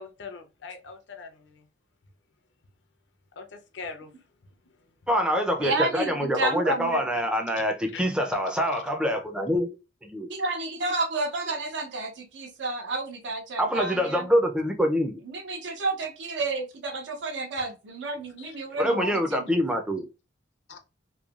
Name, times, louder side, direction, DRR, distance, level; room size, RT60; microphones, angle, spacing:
voice 1, 0.0-1.6 3.4-4.1 7.9-8.0 18.4-18.6 20.7-20.8, left 4 dB, 70° left, 0.5 m, -42 dB
voice 2, 5.1-9.7 10.0-10.3 13.6-15.2 18.8-20.1, equal, 5° right, 0.4 m, -25 dB
voice 3, 5.6-7.0 10.3-14.3 15.3-19.6, right 2 dB, 70° right, 0.6 m, -31 dB
3.0 x 2.2 x 2.3 m
head